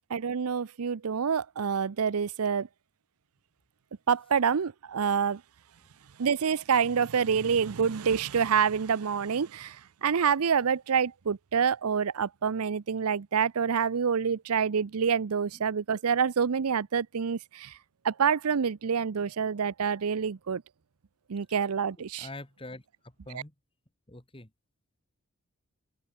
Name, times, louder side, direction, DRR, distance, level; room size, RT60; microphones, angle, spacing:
voice 1, 0.1-2.7 4.1-5.4 6.2-17.8 18.0-20.6 21.3-22.3 23.3-23.4, right 6 dB, 85° right, 0.6 m, -27 dB
voice 2, 22.2-23.5 24.1-24.5, left 2 dB, 25° left, 2.3 m, -44 dB
open air
head